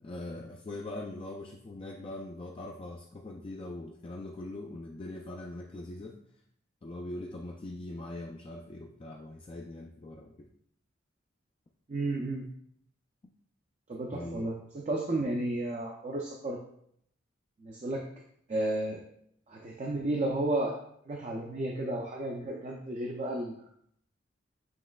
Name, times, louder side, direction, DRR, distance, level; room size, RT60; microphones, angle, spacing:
voice 1, 0.0-6.2 6.8-10.5 14.1-14.5 15.2-15.3, left 2 dB, 30° left, -1 dB, 0.3 m, -41 dB
voice 2, 11.9-12.5 13.9-16.6 17.6-18.1 18.5-19.0 19.5-20.8 21.1-23.6, right 1 dB, 35° right, 0 dB, 0.4 m, -32 dB
7.3 x 3.1 x 2.2 m, 0.68 s
head